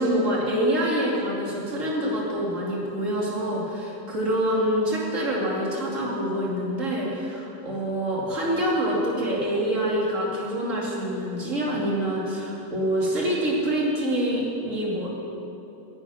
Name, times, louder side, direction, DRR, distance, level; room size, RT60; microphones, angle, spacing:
voice 1, 0.0-15.1, equal, 50° right, -4 dB, 3.1 m, -26 dB
10.5 x 9.8 x 9.6 m, 2.8 s
omnidirectional pair, 1.7 m